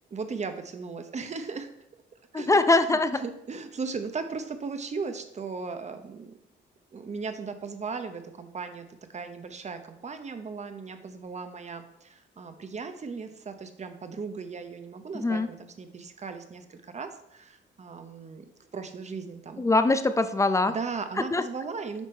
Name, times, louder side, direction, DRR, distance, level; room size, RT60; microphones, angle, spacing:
voice 1, 0.1-1.7 2.3-6.4 6.9-18.5 18.7-19.6 20.6-22.1, right 4 dB, 35° right, 8 dB, 0.9 m, -37 dB
voice 2, 2.3-3.2 15.2-15.5 19.6-20.7 21.3-21.4, left 2 dB, 15° left, 11 dB, 0.5 m, -22 dB
7.4 x 5.1 x 4.4 m, 0.80 s
cardioid pair, 90°, 20 cm